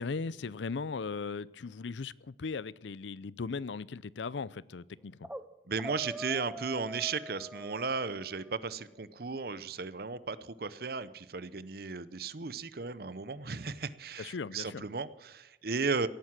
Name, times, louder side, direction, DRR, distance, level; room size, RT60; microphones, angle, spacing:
voice 1, 0.0-5.3 14.2-14.8, left 4 dB, 80° left, 21 dB, 0.5 m, -38 dB
sound 1, 5.0-5.5 5.8-8.6, right 1 dB, 5° right, 0.5 m, -44 dB
voice 2, 5.7-16.1, right 4 dB, 55° right, 16 dB, 0.7 m, -35 dB
17.0 x 9.6 x 7.4 m, 1.0 s
head